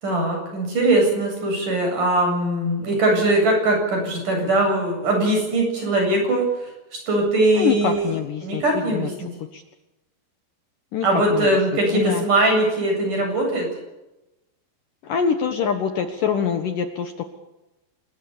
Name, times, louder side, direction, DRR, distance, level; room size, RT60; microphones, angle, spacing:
voice 1, 0.0-8.1 8.4-9.3 11.0-13.7, right 2 dB, 45° right, 2 dB, 9.6 m, -21 dB
voice 2, 7.5-9.1 9.5-9.6 10.9-11.1 11.3-11.5 11.9-12.3 15.0-17.2, left 7 dB, 60° left, 7 dB, 2.6 m, -24 dB
27.5 x 20.5 x 7.1 m, 0.99 s
omnidirectional pair, 5.0 m